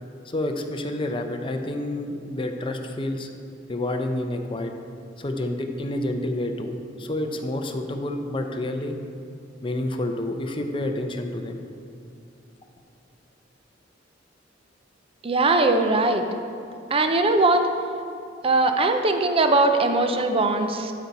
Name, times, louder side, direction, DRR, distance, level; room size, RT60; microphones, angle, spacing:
voice 1, 0.3-3.3 3.7-4.7 5.2-9.0 9.6-11.7, left 1 dB, 30° left, 5 dB, 0.6 m, -29 dB
voice 2, 15.2-16.2 16.9-17.7 18.4-20.9, right 2 dB, 30° right, 6 dB, 0.5 m, -20 dB
12.0 x 4.2 x 4.6 m, 2.6 s
head